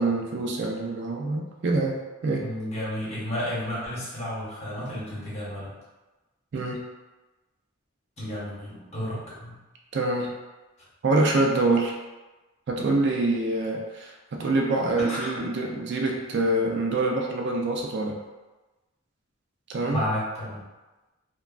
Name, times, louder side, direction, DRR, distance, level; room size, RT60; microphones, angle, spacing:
voice 1, 0.0-1.9 2.2-2.5 6.5-6.8 9.9-10.3 11.0-11.9 12.7-18.1 19.7-20.0, right 2 dB, 55° right, 0 dB, 0.4 m, -25 dB
voice 2, 2.4-5.7 8.2-9.6 15.0-15.3 19.9-20.6, equal, 30° left, -8 dB, 0.9 m, -32 dB
2.9 x 2.2 x 2.4 m, 1.1 s
head